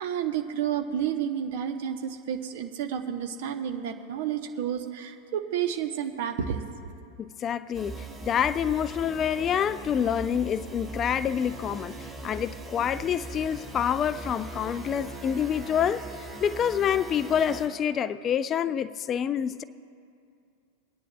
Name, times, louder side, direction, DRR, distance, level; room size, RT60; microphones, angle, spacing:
voice 1, 0.0-6.9, right 9 dB, 50° right, 0.9 m, -31 dB
voice 2, 7.2-19.6, left 8 dB, 25° left, 0.3 m, -27 dB
sound 1, 7.7-17.7, right 2 dB, 15° right, 2.4 m, -40 dB
28.0 x 9.7 x 2.2 m
figure-of-eight pair, 90°, 0 cm